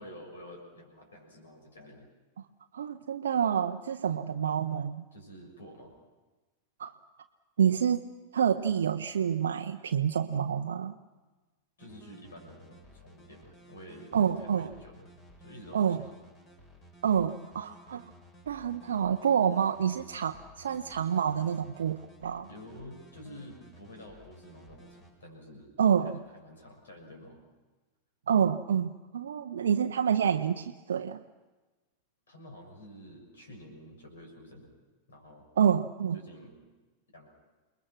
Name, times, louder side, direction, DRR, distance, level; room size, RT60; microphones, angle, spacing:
voice 1, 0.0-2.1 4.1-4.2 5.1-5.9 11.8-15.1 15.4-16.2 22.5-25.7 26.0-27.4 32.3-34.7 35.1-35.4 36.1-36.6 37.1-37.3, equal, 70° left, 2 dB, 6.5 m, -49 dB
voice 2, 2.7-5.0 6.8-6.9 7.6-10.9 14.1-14.7 15.7-16.0 17.0-18.1 18.5-22.5 25.8-26.2 28.3-31.2 35.6-36.2, right 8 dB, 65° right, 6 dB, 0.6 m, -28 dB
sound 1, 11.8-25.1, equal, 30° left, 4.4 m, -55 dB
28.5 x 21.0 x 6.1 m, 1.2 s
figure-of-eight pair, 90°, 0 cm